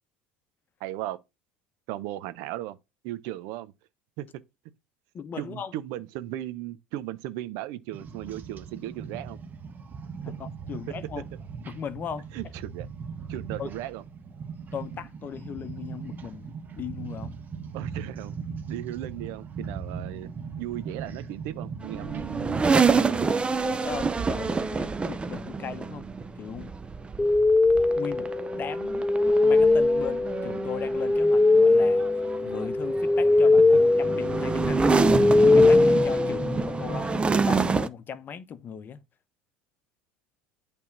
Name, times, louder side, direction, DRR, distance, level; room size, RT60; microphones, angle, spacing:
voice 1, 0.8-1.2 1.9-2.8 3.0-3.7 4.2-4.3 5.4-9.4 10.9-11.0 12.3-12.9 13.3-14.0 17.7-18.3 18.7-23.2, right 14 dB, 70° right, 0.8 m, -36 dB
voice 2, 5.1-5.7 10.2-11.2 11.6-12.3 13.6-13.7 14.7-17.4 23.7-26.7 28.0-29.1 29.4-39.0, left 7 dB, 40° left, 0.9 m, -38 dB
sound 1, 7.9-22.8, right 5 dB, 35° right, 1.3 m, -39 dB
sound 2, 21.8-37.9, right 4 dB, 20° right, 0.7 m, -28 dB
sound 3, 27.2-36.9, left 2 dB, 10° left, 0.3 m, -21 dB
8.6 x 3.6 x 5.9 m
supercardioid pair, 90°, 5 cm